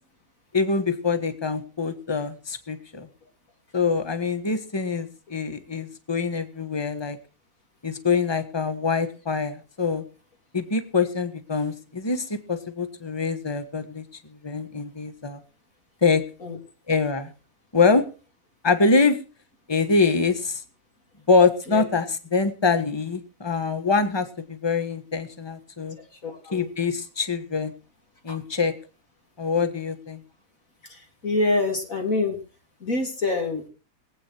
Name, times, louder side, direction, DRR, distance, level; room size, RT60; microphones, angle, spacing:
voice 1, 0.5-3.1 3.7-7.2 7.8-10.0 10.5-14.0 14.3-15.4 16.0-16.2 16.9-17.3 17.7-18.0 18.6-19.2 19.7-20.6 21.3-26.0 26.5-27.7 28.2-28.7 29.4-30.2, left 4 dB, 15° left, 9 dB, 1.3 m, -24 dB
voice 2, 26.2-26.7 28.3-28.4 30.9-32.4 32.8-33.7, left 2 dB, 55° left, 2 dB, 3.7 m, -26 dB
22.5 x 8.9 x 4.5 m, 0.35 s
omnidirectional pair, 1.7 m